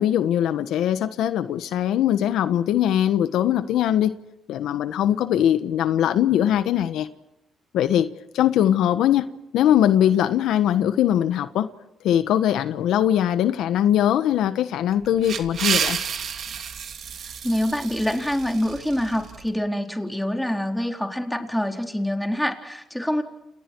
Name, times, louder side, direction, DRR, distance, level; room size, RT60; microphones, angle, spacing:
voice 1, 0.0-4.1 4.5-7.1 7.7-8.1 8.3-9.3 9.5-11.7 12.0-16.0, left 11 dB, 85° left, 1.3 m, -21 dB
sound 1, 14.9-19.4, right 7 dB, 60° right, 2.9 m, -30 dB
voice 2, 17.2-23.2, left 1 dB, 5° left, 4.2 m, -26 dB
30.0 x 29.5 x 4.7 m
cardioid pair, 90°, 0 cm